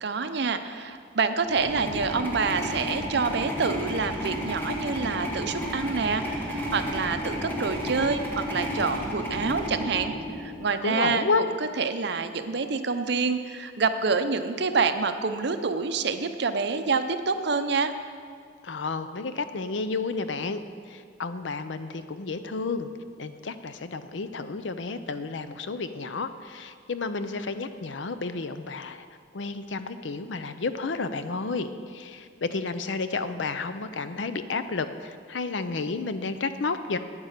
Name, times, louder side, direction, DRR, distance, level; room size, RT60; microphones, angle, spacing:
voice 1, 0.0-10.1 10.4-11.3 11.8-17.9, right 4 dB, 65° right, 9 dB, 0.7 m, -27 dB
sound 1, 1.5-10.9, equal, 10° left, 1.7 m, -32 dB
voice 2, 10.8-11.5 18.6-22.9 23.2-29.1 29.3-37.0, left 4 dB, 80° left, 11 dB, 0.6 m, -31 dB
9.5 x 8.9 x 6.6 m, 2.1 s
head